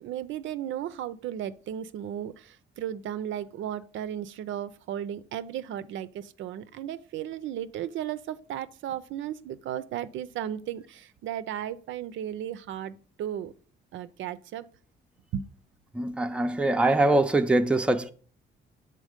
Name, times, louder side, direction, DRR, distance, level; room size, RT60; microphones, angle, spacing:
voice 1, 0.0-13.5 13.9-14.7 15.3-15.5, right 10 dB, 75° right, 0.4 m, -35 dB
voice 2, 15.9-18.1, right 2 dB, 5° right, 0.5 m, -23 dB
6.3 x 4.0 x 5.0 m
cardioid pair, 90°, 20 cm